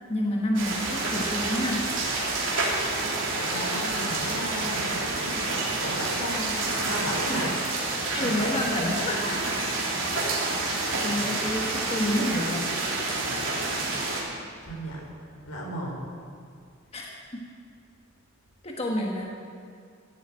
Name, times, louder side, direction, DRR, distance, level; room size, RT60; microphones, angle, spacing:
voice 1, 0.1-1.9 7.3-7.5 7.9-9.7 10.5-12.7 13.5-13.6 16.9-17.5 18.6-19.2, left 1 dB, 30° left, -1 dB, 1.3 m, -29 dB
sound 1, 0.5-14.2, right 3 dB, 60° right, 3.5 m, -28 dB
voice 2, 3.4-7.5 8.1-8.4 8.8-9.3 14.6-15.1 15.4-16.0, equal, 90° left, -2 dB, 4.6 m, -34 dB
16.0 x 8.1 x 8.9 m, 2.3 s
head